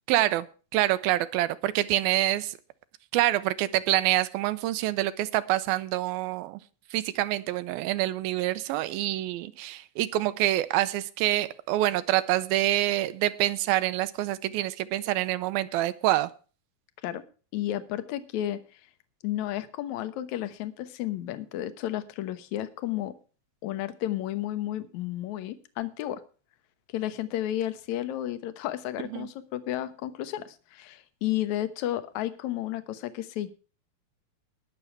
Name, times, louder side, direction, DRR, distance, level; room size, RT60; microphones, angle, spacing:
voice 1, 0.1-0.5 0.7-2.6 3.1-6.6 6.9-16.3 29.1-29.3, right 15 dB, 85° right, 14 dB, 2.6 m, -26 dB
voice 2, 17.5-18.8 19.2-23.1 23.6-26.2 26.9-33.5, left 13 dB, 65° left, 12 dB, 2.1 m, -32 dB
20.5 x 7.1 x 4.6 m, 0.36 s
omnidirectional pair, 4.2 m